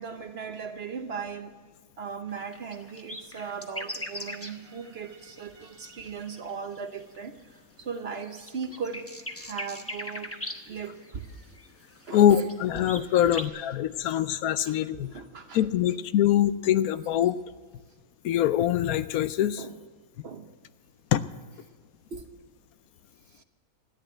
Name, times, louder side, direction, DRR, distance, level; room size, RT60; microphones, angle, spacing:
voice 1, 0.0-1.5 2.0-7.4 7.8-10.3 10.7-11.3 12.1-12.2 13.2-13.4 14.7-14.8 15.0-15.6 19.6-19.8 20.2-20.5 22.1-22.2, right 6 dB, 50° right, 1.0 m, -38 dB
sound 1, 2.3-7.4 7.8-13.5, left 1 dB, 10° left, 0.9 m, -41 dB
voice 2, 12.1-15.1 15.5-17.4 18.2-19.6 21.1-21.2, left 11 dB, 75° left, 1.1 m, -23 dB
14.0 x 10.0 x 8.0 m
omnidirectional pair, 1.5 m